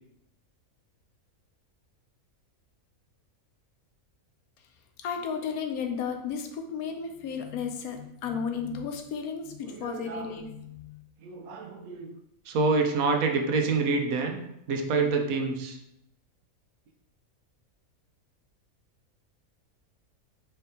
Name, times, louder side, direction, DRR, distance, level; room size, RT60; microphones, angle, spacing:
voice 1, 5.0-11.0, left 6 dB, 85° left, 5 dB, 1.1 m, -34 dB
voice 2, 9.6-10.3 11.2-12.1 12.5-14.4 14.7-15.8, right 4 dB, 75° right, 4 dB, 1.0 m, -27 dB
4.3 x 3.5 x 2.8 m, 0.81 s
omnidirectional pair, 1.5 m